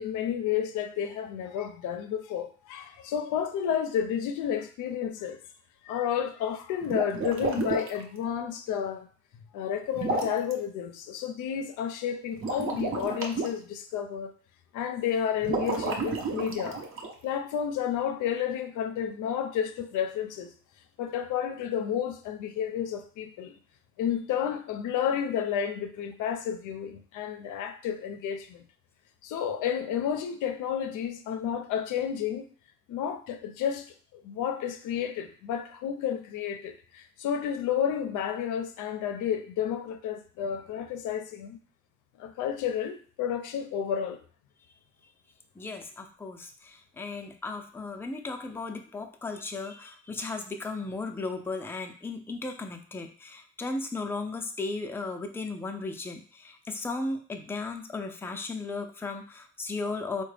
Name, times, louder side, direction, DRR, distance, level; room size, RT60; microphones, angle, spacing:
voice 1, 0.0-5.4 5.8-9.1 9.5-14.3 14.7-16.8 17.2-20.5 21.0-23.6 24.0-28.7 29.2-32.5 32.9-41.6 42.2-44.2, left 8 dB, 85° left, 7 dB, 0.5 m, -31 dB
sound 1, 6.8-8.0 9.9-10.5 12.3-13.5 15.4-17.1, right 3 dB, 45° right, 0.8 m, -31 dB
voice 2, 45.6-60.2, left 3 dB, 10° left, 4 dB, 0.4 m, -35 dB
3.7 x 2.2 x 3.2 m, 0.43 s
cardioid pair, 90°, 30 cm